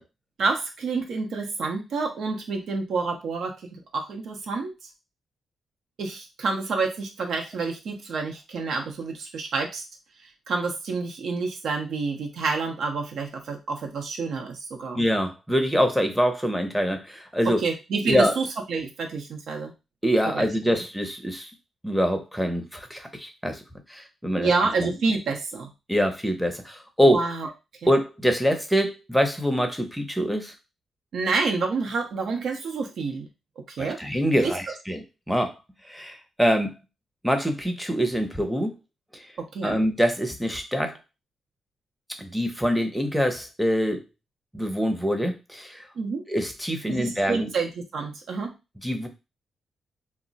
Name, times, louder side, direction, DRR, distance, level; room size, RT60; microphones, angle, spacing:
voice 1, 0.4-4.7 6.0-9.8 10.5-15.0 17.5-19.7 20.3-20.8 24.4-25.7 27.0-27.5 27.8-27.9 31.1-33.3 33.6-34.0 34.3-34.5 39.4-39.8 46.0-46.2 46.9-48.5, right 4 dB, 70° right, 2 dB, 0.6 m, -28 dB
voice 2, 15.0-17.6 18.0-18.3 20.0-21.5 21.8-23.6 23.9-24.5 24.8-25.0 25.9-27.2 27.9-30.5 33.8-35.5 35.9-36.7 37.2-38.7 39.1-39.3 39.6-41.0 42.2-44.0 44.5-45.9 46.3-47.5 48.8-49.1, equal, ahead, 5 dB, 0.6 m, -24 dB
2.3 x 2.0 x 3.9 m, 0.27 s
cardioid pair, 110°, 0 cm